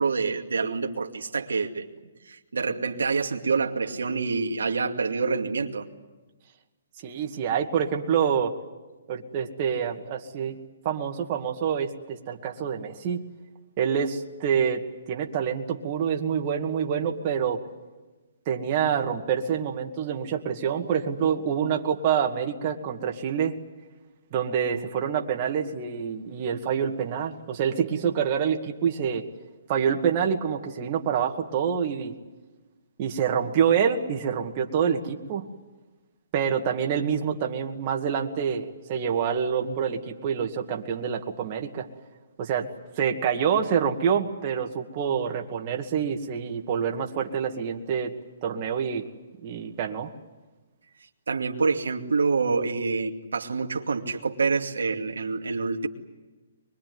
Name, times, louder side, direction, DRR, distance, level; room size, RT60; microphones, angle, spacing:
voice 1, 0.0-1.9 2.3-5.9 51.3-55.9, right 4 dB, 85° right, 2 dB, 2.4 m, -27 dB
voice 2, 7.0-8.5 9.1-10.6 10.8-13.2 13.8-17.6 18.5-23.6 24.3-29.2 29.7-32.1 33.0-35.5 36.3-41.9 42.4-42.7 43.0-48.1 48.4-49.1 49.4-50.1, right 7 dB, 35° right, 2 dB, 2.3 m, -26 dB
24.0 x 22.5 x 9.6 m, 1.2 s
hypercardioid pair, 145°, 0 cm